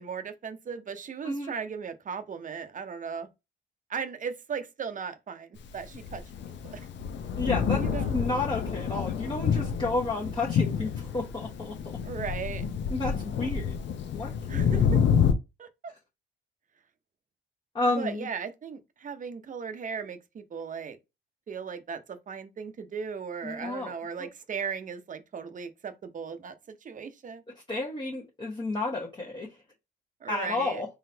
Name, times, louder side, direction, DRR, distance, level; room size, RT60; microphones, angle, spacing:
voice 1, 0.0-3.3 3.9-6.2 6.6-6.9 7.8-8.1 12.0-12.6 14.5-15.0 15.6-15.9 18.0-21.0 21.5-27.4 30.2-30.8, right 6 dB, 40° right, 0.8 m, -37 dB
Thunder, 5.8-15.3, left 7 dB, 65° left, 0.7 m, -28 dB
voice 2, 7.4-7.8 8.1-12.0 12.9-13.8 14.1-14.3 17.7-18.3 23.4-23.9 27.7-29.5 30.3-30.9, left 2 dB, 25° left, 1.0 m, -31 dB
3.9 x 3.1 x 2.8 m
cardioid pair, 90°, 20 cm